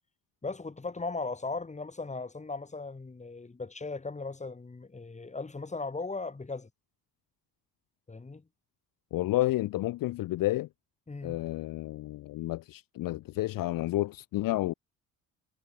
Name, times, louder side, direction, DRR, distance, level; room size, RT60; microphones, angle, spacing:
voice 1, 0.4-6.7 8.1-8.4 11.1-11.4, left 3 dB, 20° left, 2.2 m, -37 dB
voice 2, 9.1-10.7 11.2-14.7, left 16 dB, 60° left, 0.6 m, -30 dB
cardioid pair, 100°, 38 cm